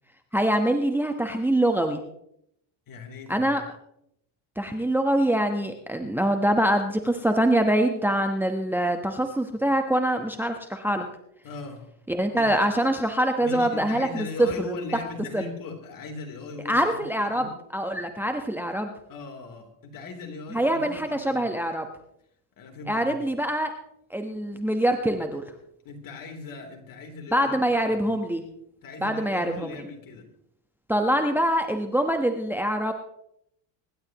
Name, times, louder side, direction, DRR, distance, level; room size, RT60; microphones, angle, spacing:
voice 1, 0.3-2.0 3.3-3.6 4.6-11.0 12.1-14.1 14.4-14.8 15.3-15.4 16.7-17.5 17.7-18.9 20.5-21.9 22.9-23.7 24.1-25.4 27.3-28.4 29.0-29.8 30.9-32.9, right 1 dB, 5° right, 5 dB, 1.1 m, -24 dB
voice 2, 2.9-3.6 11.4-11.9 12.3-12.6 13.4-17.5 19.1-21.5 22.6-23.2 25.9-27.5 28.8-30.3, left 4 dB, 45° left, 3 dB, 3.5 m, -39 dB
25.0 x 11.5 x 3.0 m, 0.74 s
supercardioid pair, 110°, 48 cm